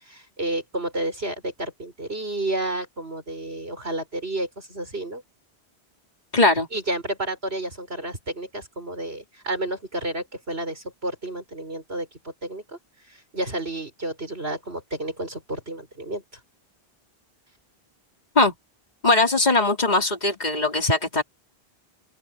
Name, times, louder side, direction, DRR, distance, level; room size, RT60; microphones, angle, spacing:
voice 1, 0.1-5.2 6.7-12.1 12.4-12.6 13.3-16.2, right 1 dB, 75° right, 6.9 m, -31 dB
voice 2, 6.3-6.7 18.4-18.5 19.0-21.2, left 2 dB, 40° left, 3.8 m, -20 dB
open air
omnidirectional pair, 1.1 m